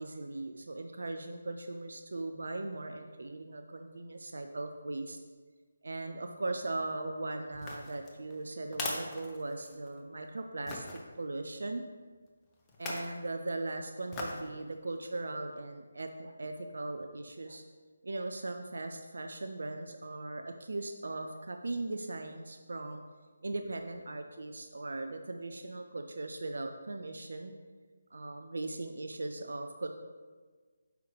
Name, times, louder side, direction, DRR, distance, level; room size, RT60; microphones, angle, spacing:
voice 1, 0.0-5.2 5.8-10.9 11.2-11.9 12.8-17.6 18.0-23.0 23.4-27.5 28.1-29.9, right 2 dB, 65° right, 5 dB, 0.4 m, -39 dB
sound 1, 7.5-10.0 10.7-11.0 12.7-13.2 14.1-14.5 15.0-15.1, left 2 dB, 15° left, 0.6 m, -40 dB
6.0 x 4.7 x 3.3 m, 1.4 s
figure-of-eight pair, 150°, 0 cm